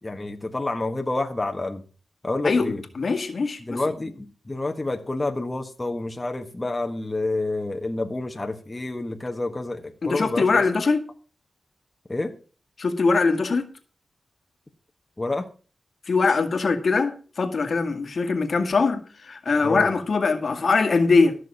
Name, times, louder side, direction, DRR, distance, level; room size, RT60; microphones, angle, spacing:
voice 1, 0.0-1.8 2.2-2.8 3.6-10.6 12.1-12.3 15.2-15.5 19.6-19.9, left 2 dB, 25° left, 1.5 m, -28 dB
voice 2, 2.4-3.8 10.0-11.0 12.8-13.7 16.1-21.4, left 4 dB, 60° left, 1.9 m, -22 dB
14.0 x 6.5 x 6.2 m
cardioid pair, 70°, 0 cm